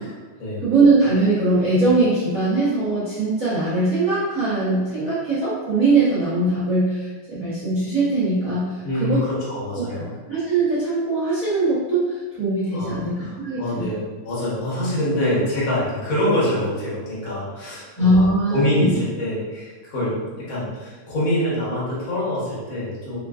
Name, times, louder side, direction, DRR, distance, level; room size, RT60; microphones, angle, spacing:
voice 1, 0.6-8.7 9.0-9.2 9.9-13.9 18.0-18.9, right 2 dB, 70° right, -13 dB, 0.8 m, -21 dB
voice 2, 8.8-10.1 12.7-23.2, left 1 dB, 90° left, -9 dB, 0.7 m, -25 dB
4.7 x 2.4 x 2.4 m, 1.3 s
omnidirectional pair, 3.4 m